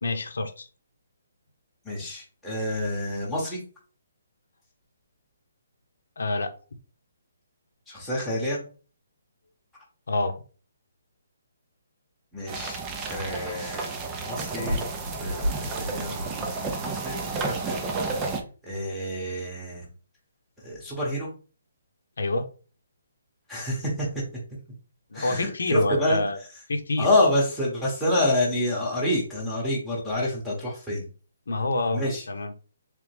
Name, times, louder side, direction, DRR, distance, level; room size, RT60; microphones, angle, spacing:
voice 1, 0.0-0.7 6.2-6.5 10.1-10.3 22.2-22.5 25.1-26.4 26.7-27.1 31.5-32.5, left 2 dB, 80° left, 7 dB, 0.8 m, -27 dB
voice 2, 1.8-3.6 7.9-8.6 12.3-12.8 13.1-14.9 15.2-17.9 18.6-19.9 20.6-21.3 23.5-24.1 25.1-26.2 27.0-31.1 31.9-32.2, left 1 dB, ahead, -6 dB, 1.0 m, -28 dB
sound 1, 12.5-18.4, right 4 dB, 15° right, 0.5 m, -32 dB
sound 2, 14.6-17.0, equal, 85° right, 1.6 m, -32 dB
3.4 x 3.3 x 3.3 m, 0.37 s
hypercardioid pair, 170°, 0 cm